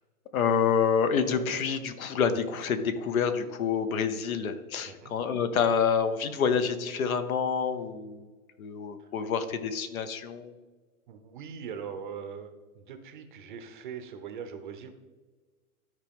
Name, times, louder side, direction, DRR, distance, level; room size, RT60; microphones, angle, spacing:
voice 1, 0.3-8.3 8.6-10.5, left 6 dB, 65° left, 11 dB, 1.0 m, -27 dB
voice 2, 11.1-14.9, right 7 dB, 35° right, 8 dB, 0.6 m, -41 dB
13.0 x 4.6 x 3.5 m, 1.3 s
hypercardioid pair, 165°, 45 cm